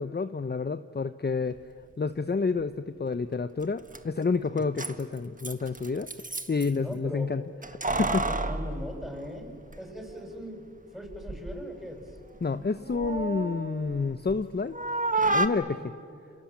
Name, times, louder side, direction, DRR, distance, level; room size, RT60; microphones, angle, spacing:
voice 1, 0.0-1.6 2.0-6.1 6.5-7.4 7.9-8.2 12.4-14.7 15.3-15.8, left 4 dB, 30° left, 10 dB, 0.9 m, -29 dB
Keys jangling, 3.6-3.7 3.9-4.0 4.6-6.7 7.6-9.8 10.1-10.2 11.0-11.6 12.0-14.4 14.7-15.5, right 2 dB, 25° right, 1.5 m, -31 dB
voice 2, 6.8-7.3 8.1-9.5 9.8-10.7 10.9-12.2 15.8-15.9, equal, ahead, 2 dB, 7.3 m, -40 dB
28.5 x 27.5 x 7.4 m, 2.4 s
cardioid pair, 50°, 31 cm